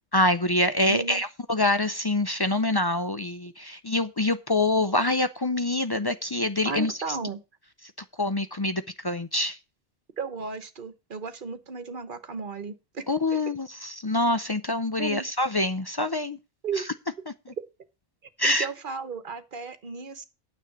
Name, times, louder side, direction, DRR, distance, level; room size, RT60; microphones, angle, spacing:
voice 1, 0.1-7.2 8.2-9.6 13.1-16.4 16.8-16.9 18.4-18.7, left 2 dB, 30° left, 0.4 m, -25 dB
voice 2, 0.8-1.2 6.6-7.4 10.2-13.0 15.0-15.3 16.6-16.8 18.4-20.2, right 4 dB, 50° right, 1.3 m, -34 dB
9.4 x 7.1 x 6.0 m
omnidirectional pair, 1.1 m